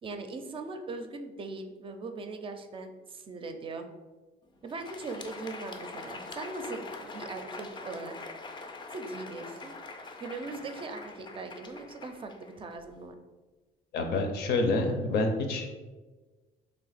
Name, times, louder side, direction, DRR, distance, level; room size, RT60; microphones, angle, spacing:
voice 1, 0.0-3.9 4.6-8.1 8.9-9.7 10.2-13.2, right 3 dB, 30° right, 7 dB, 0.5 m, -40 dB
Crowd, 4.6-13.0, left 3 dB, 25° left, 0.4 m, -44 dB
voice 2, 13.9-15.7, left 2 dB, 75° left, 4 dB, 0.7 m, -27 dB
3.4 x 2.8 x 4.0 m, 1.3 s
cardioid pair, 110°, 17 cm